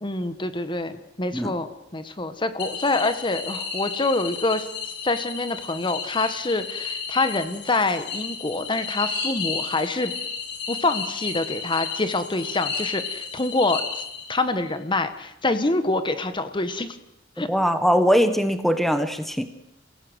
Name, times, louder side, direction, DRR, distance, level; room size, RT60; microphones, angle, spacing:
voice 1, 0.0-4.7 5.0-10.1 10.7-14.0 14.3-17.0 17.4-17.5, left 2 dB, 25° left, 10 dB, 1.3 m, -26 dB
sound 1, 2.6-14.5, left 5 dB, 65° left, 4.4 m, -33 dB
voice 2, 17.5-19.4, equal, ahead, 9 dB, 1.4 m, -21 dB
29.5 x 17.0 x 8.0 m, 0.89 s
head